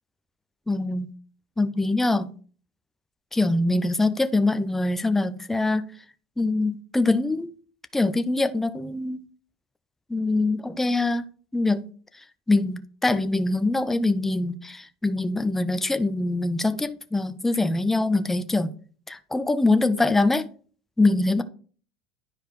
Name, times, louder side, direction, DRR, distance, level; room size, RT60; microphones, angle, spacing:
voice 1, 0.7-1.1 1.6-2.3 3.3-5.9 6.4-7.5 7.9-9.2 10.1-11.3 11.5-11.8 12.5-18.7 19.1-20.5 21.0-21.4, left 2 dB, 5° left, 11 dB, 0.5 m, -23 dB
10.0 x 4.8 x 3.1 m, 0.42 s
supercardioid pair, 125°, 4 cm